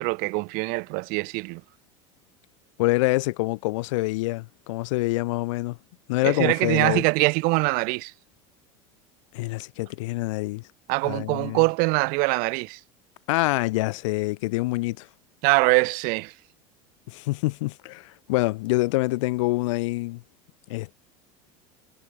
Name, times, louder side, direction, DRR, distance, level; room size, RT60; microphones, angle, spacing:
voice 1, 0.0-1.6 6.2-8.1 10.9-12.8 15.4-16.3, right 29 dB, 65° right, 1.8 m, -23 dB
voice 2, 2.8-5.8 6.1-7.0 9.3-10.6 11.0-11.6 13.3-15.1 17.1-20.2 20.7-21.0, left 21 dB, 80° left, 2.9 m, -26 dB
supercardioid pair, 100°, 16 cm